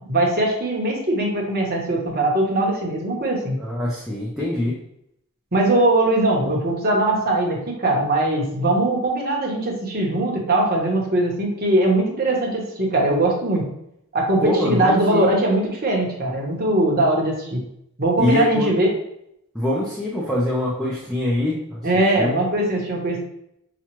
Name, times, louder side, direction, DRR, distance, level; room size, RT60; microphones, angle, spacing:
voice 1, 0.1-3.6 5.5-13.6 14.1-17.6 18.0-18.9 21.8-23.3, right 1 dB, 45° right, -1 dB, 1.0 m, -21 dB
voice 2, 3.6-4.8 14.4-15.3 18.2-18.7 19.5-21.8 22.2-22.3, left 1 dB, ahead, -7 dB, 0.6 m, -23 dB
5.9 x 2.4 x 3.0 m, 0.77 s
head